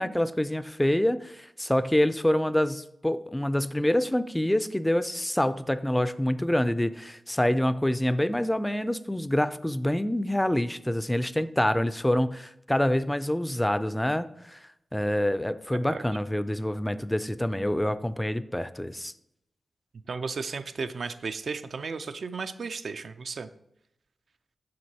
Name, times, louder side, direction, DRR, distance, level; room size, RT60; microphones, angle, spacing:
voice 1, 0.0-19.1, left 1 dB, 10° left, 14 dB, 0.3 m, -26 dB
voice 2, 20.1-23.5, right 4 dB, 70° right, 10 dB, 0.4 m, -34 dB
7.5 x 5.9 x 2.8 m, 0.80 s
cardioid pair, 70°, 0 cm